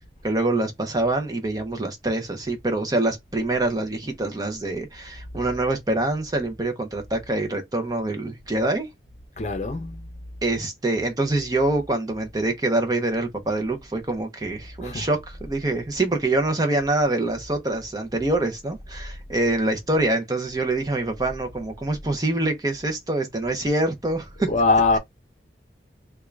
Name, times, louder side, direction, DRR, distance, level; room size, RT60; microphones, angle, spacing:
voice 1, 0.2-8.9 10.4-24.5, right 2 dB, 20° right, 0.6 m, -25 dB
voice 2, 9.4-10.0 14.8-15.1 24.4-25.0, left 3 dB, 40° left, 0.6 m, -22 dB
3.6 x 2.3 x 3.1 m
head